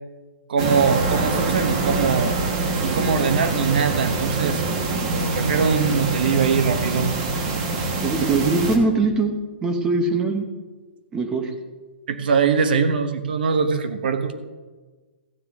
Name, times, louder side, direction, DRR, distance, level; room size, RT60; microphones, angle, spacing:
voice 1, 0.5-2.3 2.8-4.6 5.4-7.1 12.1-14.3, right 5 dB, 55° right, 9 dB, 1.1 m, -22 dB
sound 1, 0.6-8.8, right 3 dB, 30° right, 1.2 m, -25 dB
voice 2, 8.0-9.3 9.6-10.5 11.1-11.5, right 3 dB, 10° right, 6 dB, 0.8 m, -21 dB
15.0 x 9.2 x 3.5 m, 1.4 s
hypercardioid pair, 175°, 6 cm